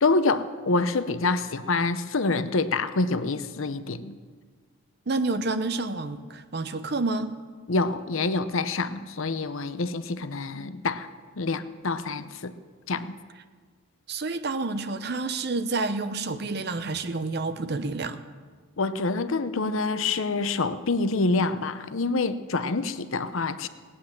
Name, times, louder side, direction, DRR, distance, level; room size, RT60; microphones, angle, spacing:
voice 1, 0.0-4.2 7.7-11.1 11.4-12.5 12.9-13.2 18.8-23.7, left 3 dB, 70° left, 12 dB, 0.7 m, -26 dB
voice 2, 5.1-7.3 14.1-18.2, right 3 dB, 50° right, 10 dB, 0.7 m, -29 dB
18.0 x 9.6 x 7.3 m, 1.6 s
head